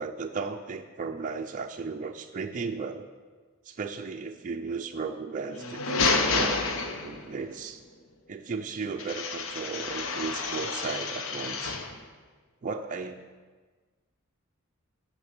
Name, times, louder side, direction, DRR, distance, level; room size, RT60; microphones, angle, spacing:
voice 1, 0.0-3.1 3.6-6.7 7.0-7.8 8.3-11.8 12.6-13.2, right 4 dB, 35° right, 4 dB, 0.4 m, -35 dB
sound 1, 5.5-7.4 9.0-12.0, left 4 dB, 65° left, 0.8 m, -29 dB
9.0 x 5.9 x 6.5 m, 1.4 s
head